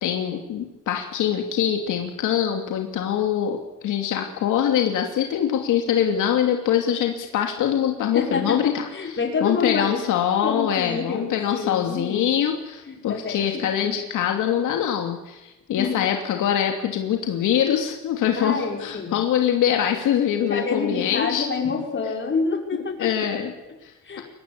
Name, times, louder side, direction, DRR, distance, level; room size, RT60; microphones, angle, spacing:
voice 1, 0.0-8.8 9.4-21.5 23.0-23.5 23.8-23.9 24.2-24.3, left 9 dB, 85° left, 3 dB, 2.9 m, -23 dB
voice 2, 8.1-10.0 10.4-12.3 12.9-14.0 15.8-16.1 18.4-19.2 20.4-23.7 24.0-24.2, left 4 dB, 40° left, 1 dB, 6.4 m, -28 dB
23.5 x 19.5 x 8.5 m, 1.0 s
cardioid pair, 90°, 30 cm